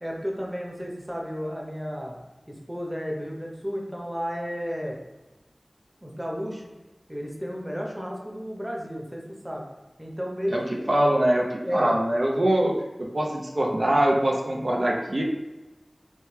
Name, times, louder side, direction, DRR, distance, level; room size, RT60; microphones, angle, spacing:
voice 1, 0.0-2.2 2.5-5.0 6.0-6.6 7.1-9.6 10.0-10.9 11.6-12.0 14.5-14.6, equal, 10° right, -1 dB, 0.8 m, -32 dB
voice 2, 10.9-11.5 11.7-12.7 13.0-15.2, right 1 dB, 70° right, -1 dB, 0.6 m, -23 dB
3.2 x 3.2 x 3.2 m, 1.1 s
wide cardioid pair, 45°, 0 cm